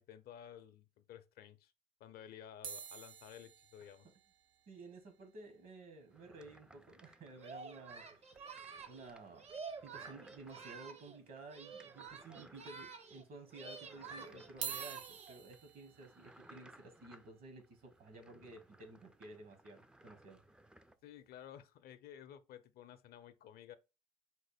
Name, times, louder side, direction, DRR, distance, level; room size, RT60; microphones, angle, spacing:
voice 1, 0.0-1.7 2.0-4.1 21.0-23.8, left 10 dB, 65° left, 0.5 m, -54 dB
sound 1, 2.6-7.0 7.3-7.4 7.5-7.7 8.1-8.2 9.6-9.7 10.4-10.9 11.4-11.5 12.4-12.5 14.4-20.5 21.1-21.3, right 8 dB, 85° right, 0.5 m, -51 dB
voice 2, 4.7-8.0 8.9-9.5 9.8-20.4, right 2 dB, 60° right, 1.4 m, -53 dB
sound 2, 6.1-21.0, right 1 dB, 5° right, 0.3 m, -63 dB
Singing, 7.4-11.2 11.5-13.2 13.5-15.4, right 5 dB, 40° right, 0.6 m, -50 dB
4.3 x 2.1 x 3.3 m
supercardioid pair, 75°, 17 cm